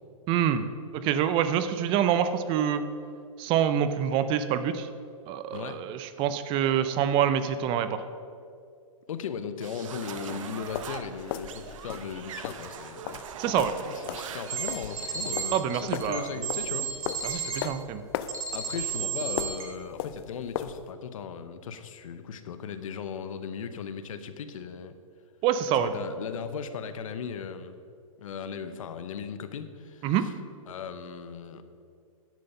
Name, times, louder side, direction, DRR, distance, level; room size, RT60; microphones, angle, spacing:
voice 1, 0.3-0.7 0.9-2.8 3.4-4.9 5.3-8.0 13.4-13.7 15.5-16.3 17.2-18.0 25.4-25.9 30.0-30.3, right 9 dB, 30° right, 11 dB, 0.5 m, -26 dB
voice 2, 9.1-13.2 13.4-16.9 18.5-25.0 25.7-27.8 28.2-30.1 30.7-31.6, left 7 dB, 70° left, 11 dB, 0.9 m, -37 dB
sound 1, 9.6-15.3, right 8 dB, 65° right, 0.9 m, -42 dB
sound 2, 10.6-20.9, left 11 dB, 45° left, 0.5 m, -38 dB
sound 3, 14.5-17.6 18.3-19.6, right 6 dB, 85° right, 1.9 m, -33 dB
10.5 x 7.8 x 5.5 m, 2.3 s
hypercardioid pair, 135°, 18 cm